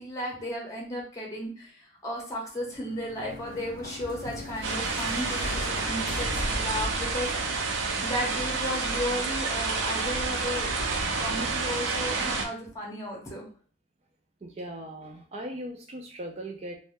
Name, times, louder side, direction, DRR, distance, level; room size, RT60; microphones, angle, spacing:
voice 1, 0.0-7.3 7.7-10.7 11.2-13.4, equal, 20° left, -1 dB, 0.7 m, -34 dB
sound 1, 2.5-8.1, left 2 dB, 50° left, 0.4 m, -40 dB
sound 2, 4.6-12.4, right 3 dB, 80° right, 0.6 m, -29 dB
voice 2, 14.4-16.8, right 1 dB, 35° right, 1 dB, 0.3 m, -38 dB
2.5 x 2.1 x 3.5 m, 0.42 s
head